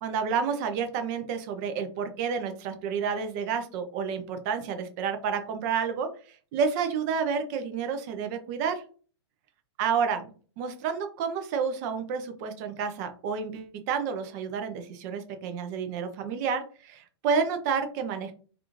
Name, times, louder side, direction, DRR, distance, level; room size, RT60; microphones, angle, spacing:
voice 1, 0.0-8.8 9.8-10.3 10.6-18.3, right 6 dB, 40° right, 7 dB, 0.6 m, -30 dB
3.4 x 2.5 x 2.9 m, 0.41 s
figure-of-eight pair, 110°, 14 cm